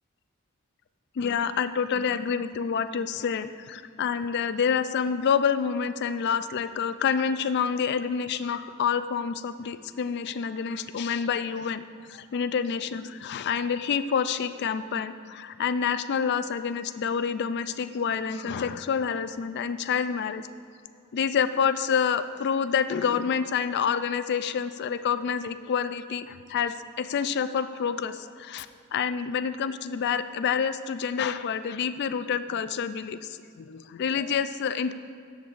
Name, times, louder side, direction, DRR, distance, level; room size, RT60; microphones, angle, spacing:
voice 1, 1.2-20.5 21.1-34.9, left 7 dB, 50° left, 12 dB, 0.3 m, -28 dB
12.5 x 8.0 x 2.5 m, 2.5 s
head